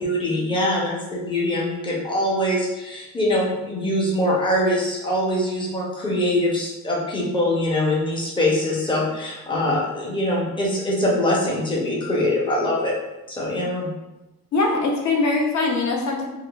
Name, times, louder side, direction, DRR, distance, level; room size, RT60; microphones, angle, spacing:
voice 1, 0.0-12.9 13.3-13.9, left 1 dB, 15° left, -4 dB, 0.5 m, -23 dB
voice 2, 14.5-16.2, left 3 dB, 55° left, 0 dB, 0.6 m, -22 dB
3.6 x 2.5 x 2.2 m, 1.0 s
cardioid pair, 170°, 36 cm